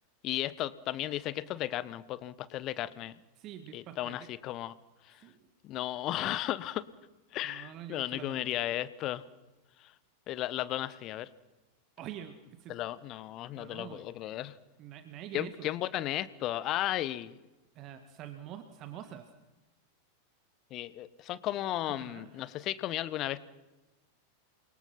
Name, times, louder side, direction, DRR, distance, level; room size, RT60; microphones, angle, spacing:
voice 1, 0.2-3.1 3.7-4.7 5.6-6.8 7.3-9.2 10.3-11.3 12.7-14.5 15.3-17.4 20.7-23.4, left 14 dB, 35° left, 18 dB, 1.2 m, -34 dB
voice 2, 3.4-4.3 5.2-5.3 7.4-8.5 12.0-12.8 13.6-14.1 14.8-15.7 17.8-19.3 22.0-22.5, right 10 dB, 35° right, 9 dB, 1.8 m, -46 dB
29.0 x 23.5 x 5.9 m, 1.1 s
figure-of-eight pair, 90°, 0 cm